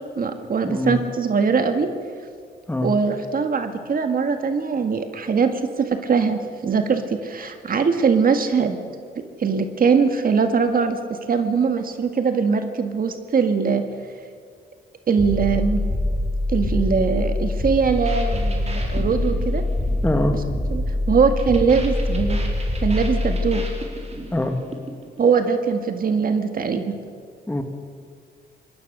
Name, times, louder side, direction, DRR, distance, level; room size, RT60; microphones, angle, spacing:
voice 1, 0.0-1.9 2.8-5.5 5.8-8.8 9.4-13.8 15.1-15.8 16.5-19.6 20.7-22.4 22.8-23.6 25.2-26.9, right 5 dB, 55° right, 7 dB, 1.8 m, -21 dB
voice 2, 0.6-1.0 2.7-2.9 20.0-20.3 24.3-24.6 27.5-27.6, left 1 dB, 10° left, 4 dB, 2.0 m, -23 dB
sound 1, 15.2-24.3, left 1 dB, 10° right, 4.1 m, -24 dB
sound 2, 17.9-25.2, right 2 dB, 35° right, 4.3 m, -38 dB
24.0 x 19.5 x 6.7 m, 2.1 s
cardioid pair, 80°, 18 cm